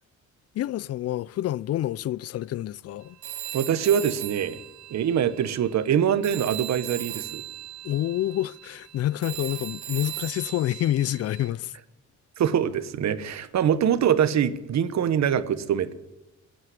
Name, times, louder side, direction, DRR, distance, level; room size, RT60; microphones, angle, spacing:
voice 1, 0.5-3.2 7.8-11.7, left 13 dB, 55° left, 0.4 m, -28 dB
Telephone, 3.2-6.0 6.2-11.5, right 13 dB, 90° right, 2.3 m, -38 dB
voice 2, 3.5-4.6 4.9-7.4 12.4-15.9, right 9 dB, 65° right, 1.2 m, -24 dB
16.5 x 9.0 x 9.4 m
cardioid pair, 90°, 30 cm